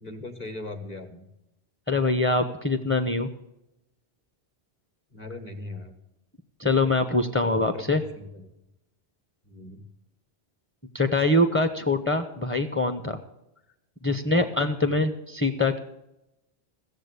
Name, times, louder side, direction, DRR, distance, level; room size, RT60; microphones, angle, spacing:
voice 1, 0.0-1.3 5.1-5.9 7.4-7.8 8.2-8.5 9.5-9.9, left 2 dB, 40° left, 7 dB, 1.8 m, -39 dB
voice 2, 1.9-3.3 6.6-8.0 10.9-13.2 14.0-15.8, left 2 dB, 10° left, 7 dB, 0.8 m, -24 dB
16.0 x 7.3 x 8.2 m, 0.88 s
omnidirectional pair, 1.1 m